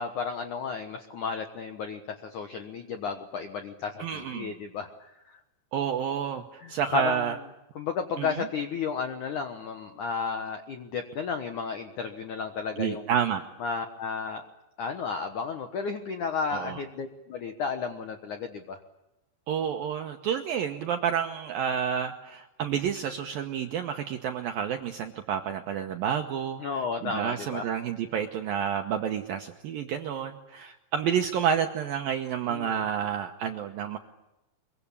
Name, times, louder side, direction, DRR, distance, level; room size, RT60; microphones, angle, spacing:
voice 1, 0.0-5.4 6.6-7.3 7.8-13.1 13.6-14.4 14.8-18.8 26.6-27.7 32.5-32.8, left 5 dB, 75° left, 7 dB, 1.8 m, -33 dB
voice 2, 4.0-4.5 5.7-7.4 8.2-8.5 12.8-13.5 16.5-16.8 19.5-34.0, right 8 dB, 75° right, 5 dB, 2.1 m, -30 dB
23.5 x 23.5 x 8.5 m, 0.96 s
omnidirectional pair, 5.5 m